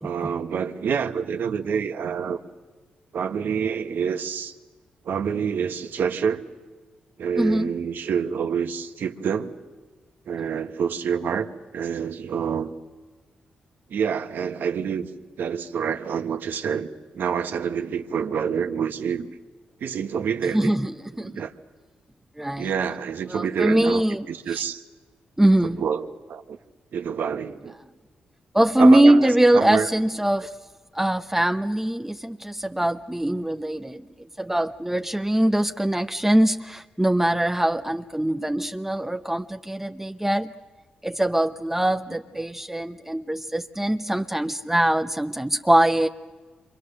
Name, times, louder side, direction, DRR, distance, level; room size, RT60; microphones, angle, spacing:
voice 1, 0.0-2.4 3.1-4.5 5.0-6.4 7.2-9.5 10.3-12.7 13.9-15.1 15.4-16.9 17.1-19.3 19.8-20.8 21.2-21.5 22.6-24.8 25.6-26.6 26.9-27.8 28.8-29.3 29.5-29.9, right 7 dB, 65° right, 1.3 m, -27 dB
voice 2, 7.4-7.7 10.4-10.6 20.5-21.4 22.4-22.8 23.3-24.6 25.4-25.8 28.5-30.5 30.9-40.5 41.0-46.1, right 1 dB, 10° right, 0.9 m, -22 dB
28.0 x 25.5 x 6.7 m
hypercardioid pair, 45°, 4 cm